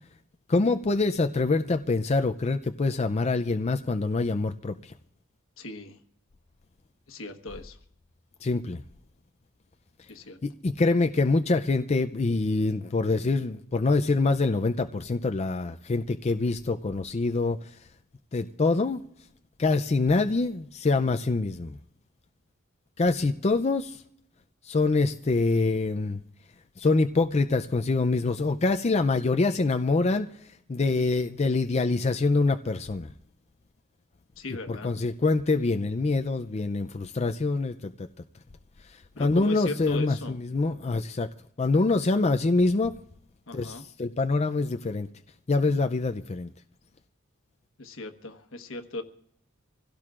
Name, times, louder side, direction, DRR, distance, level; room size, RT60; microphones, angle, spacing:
voice 1, 0.5-4.9 8.4-8.8 10.0-10.1 10.4-17.9 18.3-19.0 19.6-21.8 23.0-24.0 24.6-26.2 26.8-33.1 34.5-38.1 38.8-41.3 41.6-43.0 43.5-45.1 45.5-46.5, left 3 dB, 30° left, 0.5 m, -25 dB
voice 2, 5.6-6.0 7.1-7.8 10.1-10.4 34.4-34.9 39.2-40.4 43.5-43.8 47.8-49.0, left 2 dB, 70° left, 1.3 m, -38 dB
26.0 x 16.5 x 2.5 m
head